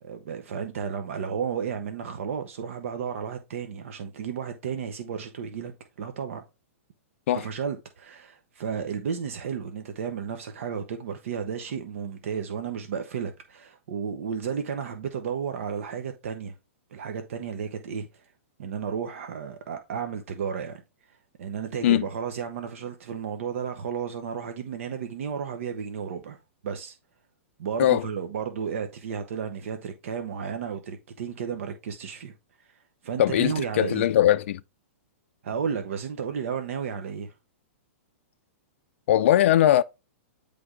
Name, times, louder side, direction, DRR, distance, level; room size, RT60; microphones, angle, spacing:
voice 1, 0.0-5.7 6.0-6.4 7.3-16.5 16.9-18.3 18.6-20.8 21.1-26.4 26.6-27.0 27.6-32.3 32.6-34.1 35.4-37.3, right 7 dB, 70° right, 0.9 m, -33 dB
voice 2, 33.2-34.6 39.1-39.8, left 12 dB, 60° left, 0.3 m, -20 dB
9.4 x 3.4 x 3.7 m
hypercardioid pair, 145°, 7 cm